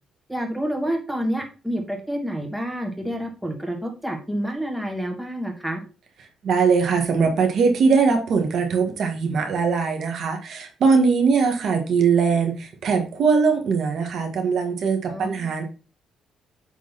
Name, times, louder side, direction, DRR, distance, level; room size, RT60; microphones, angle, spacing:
voice 1, 0.3-5.8 15.1-15.3, equal, 5° right, 3 dB, 1.6 m, -28 dB
voice 2, 6.4-15.6, right 5 dB, 65° right, 4 dB, 1.7 m, -21 dB
8.4 x 3.8 x 4.1 m, 0.34 s
cardioid pair, 90°, 0 cm